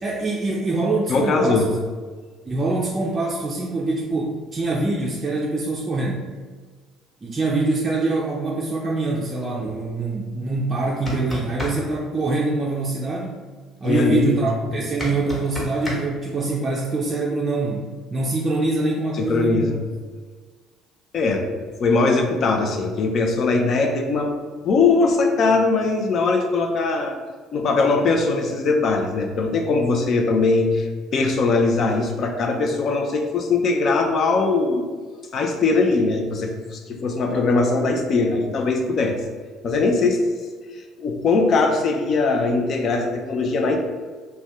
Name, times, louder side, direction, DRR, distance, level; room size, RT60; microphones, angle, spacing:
voice 1, 0.0-1.6 2.5-6.3 7.2-13.4 13.8-19.7, right 2 dB, 30° right, -3 dB, 0.4 m, -24 dB
voice 2, 1.1-1.7 9.6-9.7 13.8-14.5 19.2-19.8 21.1-24.3 24.6-27.2 27.5-34.9 35.3-39.2 39.6-40.2 41.0-43.8, left 3 dB, 50° left, 3 dB, 0.4 m, -21 dB
sound 1, 10.8-11.8 15.0-16.0, equal, 20° left, 1.0 m, -29 dB
2.5 x 2.2 x 3.4 m, 1.5 s
hypercardioid pair, 60°, 0 cm